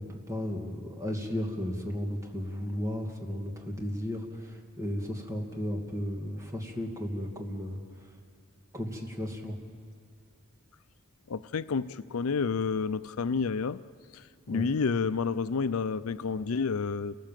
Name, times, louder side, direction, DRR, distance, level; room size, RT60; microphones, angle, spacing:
voice 1, 0.0-7.8 8.7-9.6 14.5-14.7, equal, 15° right, 1 dB, 2.3 m, -34 dB
voice 2, 11.3-13.8 14.1-17.2, left 5 dB, 75° left, 15 dB, 0.5 m, -30 dB
29.0 x 18.5 x 7.6 m, 2.3 s
head